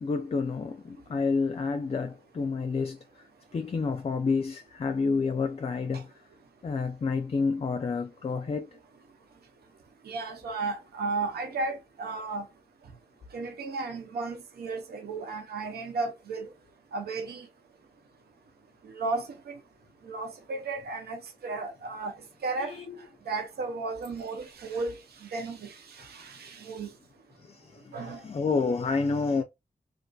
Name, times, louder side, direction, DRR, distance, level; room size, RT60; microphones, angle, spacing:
voice 1, 0.0-3.3 3.5-6.2 6.6-8.8 22.6-23.0 27.4-29.4, left 4 dB, 40° left, 0.4 m, -29 dB
voice 2, 10.0-12.5 13.3-16.5 16.9-17.5 18.8-19.6 20.0-22.1 22.4-22.8 23.3-26.9 27.9-28.2, right 3 dB, 85° right, 0.7 m, -34 dB
2.5 x 2.5 x 2.2 m
cardioid pair, 40°, 16 cm